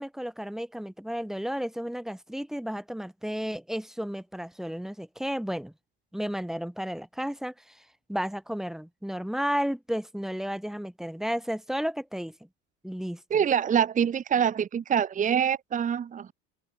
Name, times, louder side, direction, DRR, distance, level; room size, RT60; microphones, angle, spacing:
voice 1, 0.0-5.7 6.1-7.8 8.1-12.3 12.8-13.2, equal, ahead, 4.1 m, -33 dB
voice 2, 13.3-16.3, right 8 dB, 25° right, 1.3 m, -25 dB
supercardioid pair, 130°, 31 cm